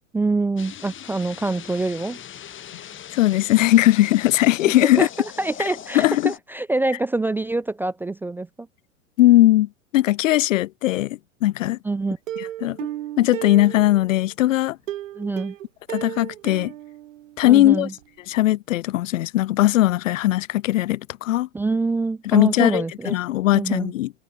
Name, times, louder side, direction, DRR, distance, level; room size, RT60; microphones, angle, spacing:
voice 1, 0.1-2.2 5.0-5.1 5.4-8.5 11.8-12.2 15.1-15.6 17.4-17.9 21.5-23.2 23.5-23.9, right 3 dB, 5° right, 0.3 m, -25 dB
sound 1, 0.6-6.4, left 10 dB, 30° left, 5.2 m, -40 dB
voice 2, 3.1-5.1 5.9-6.3 9.2-11.8 12.4-12.8 13.2-14.8 15.9-16.7 17.4-17.9 18.3-21.5 22.3-24.1, left 15 dB, 75° left, 0.6 m, -19 dB
Plucked string instrument, 12.3-14.2 14.9-17.7 18.0-18.1 18.4-18.5, right 13 dB, 75° right, 1.4 m, -34 dB
hypercardioid pair, 100°, 39 cm